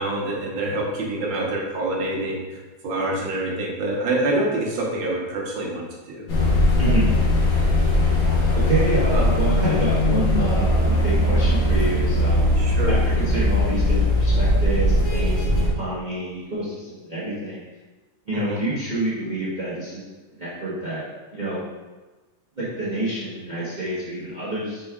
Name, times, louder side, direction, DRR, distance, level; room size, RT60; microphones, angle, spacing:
voice 1, 0.0-6.3 9.1-9.2 12.6-12.9 18.3-18.6, right 2 dB, 85° right, -1 dB, 1.7 m, -26 dB
sound 1, 6.3-15.7, left 1 dB, 60° left, 1.2 m, -19 dB
voice 2, 6.7-7.1 8.6-12.5 12.9-17.6 18.3-21.0 21.3-21.6 22.6-24.8, right 1 dB, 35° right, -10 dB, 0.8 m, -28 dB
5.3 x 4.4 x 2.3 m, 1.2 s
omnidirectional pair, 2.1 m